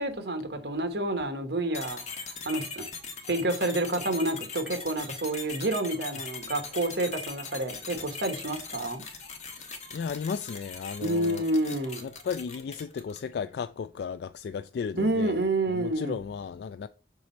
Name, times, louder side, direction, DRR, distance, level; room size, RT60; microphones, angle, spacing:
voice 1, 0.0-2.9 3.3-9.0 11.0-12.1 14.9-16.2, right 1 dB, 65° right, 1.3 m, -29 dB
sound 1, 1.7-13.3, left 4 dB, 40° left, 1.3 m, -40 dB
voice 2, 9.9-11.4 12.0-16.9, left 6 dB, 65° left, 0.3 m, -35 dB
6.4 x 4.1 x 4.4 m
head